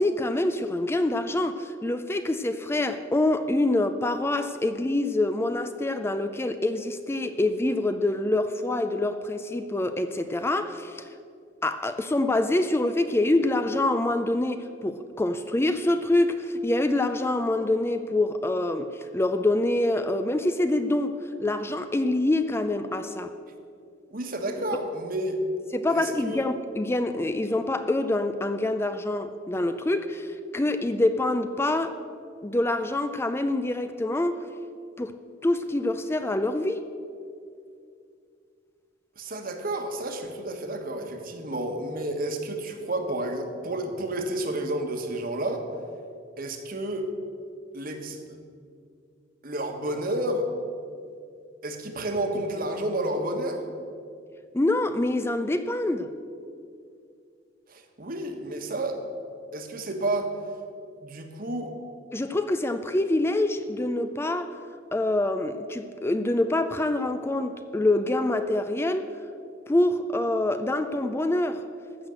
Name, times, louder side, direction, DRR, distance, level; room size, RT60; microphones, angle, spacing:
voice 1, 0.0-11.1 11.6-23.3 25.7-32.0 32.4-34.4 35.0-35.1 35.4-36.9 54.5-56.1 62.1-64.6 64.9-69.1 69.7-71.6, left 2 dB, 15° left, 0.4 m, -26 dB
voice 2, 24.1-25.4 25.9-26.5 39.2-45.6 46.4-47.1 47.7-48.2 49.4-50.4 51.6-53.7 57.7-59.0 59.5-60.3 61.0-61.7, right 1 dB, 50° right, 1.4 m, -30 dB
14.5 x 6.4 x 7.7 m
head